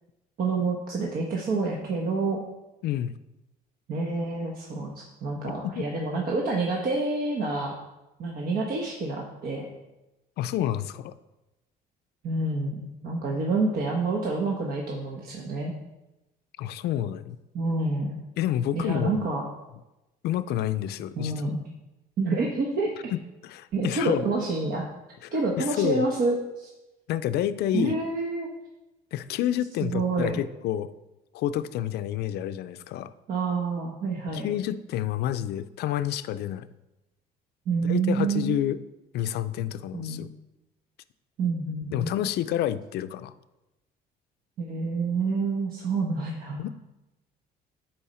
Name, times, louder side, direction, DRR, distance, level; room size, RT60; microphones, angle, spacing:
voice 1, 0.4-2.4 3.9-7.7 8.2-9.7 12.2-15.7 17.5-18.2 18.7-19.4 21.2-21.6 22.2-22.9 23.7-24.9 25.3-26.7 27.7-28.5 29.8-30.4 33.3-34.5 37.7-38.6 39.9-40.2 41.4-42.1 44.6-46.6, right 3 dB, 60° right, -1 dB, 1.1 m, -28 dB
voice 2, 2.8-3.1 5.6-5.9 10.4-11.1 16.6-17.4 18.4-19.3 20.2-21.3 23.1-24.2 25.2-26.1 27.1-27.9 29.1-30.9 31.3-33.1 34.3-36.7 37.8-38.8 39.1-40.3 41.9-43.3 46.6-46.7, left 11 dB, 75° left, 13 dB, 0.5 m, -29 dB
10.5 x 4.4 x 4.3 m, 0.99 s
cardioid pair, 110°, 17 cm